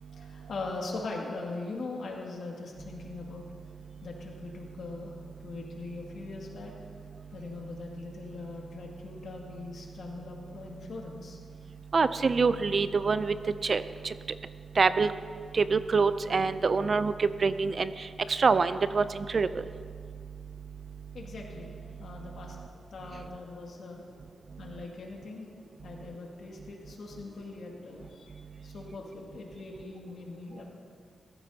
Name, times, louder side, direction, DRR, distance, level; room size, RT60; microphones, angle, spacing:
voice 1, 0.2-3.4 4.0-5.1 5.4-6.7 7.3-11.4 12.2-12.3 21.1-24.0 24.6-25.5 25.8-28.3 28.6-30.7, left 3 dB, 70° left, -1 dB, 2.2 m, -41 dB
voice 2, 11.9-13.3 13.7-13.8 14.8-15.1 15.6-17.1 17.4-17.9 18.4-19.0 19.3-19.5, right 4 dB, 50° right, 13 dB, 0.4 m, -24 dB
16.0 x 13.5 x 2.8 m, 2.2 s
cardioid pair, 80°, 0 cm